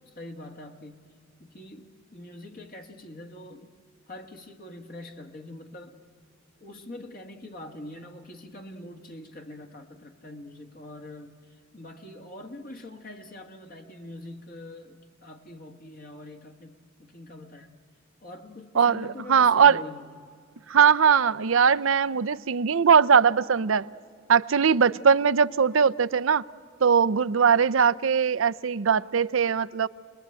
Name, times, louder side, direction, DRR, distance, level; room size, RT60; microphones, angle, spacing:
voice 1, 0.0-1.0 1.4-3.7 4.1-6.0 6.6-17.8 18.2-20.1, left 1 dB, 45° left, 1.6 m, -44 dB
voice 2, 18.8-19.8 20.7-23.9 24.3-26.4 26.8-29.9, right 6 dB, 70° right, 0.6 m, -20 dB
28.0 x 21.0 x 9.0 m
head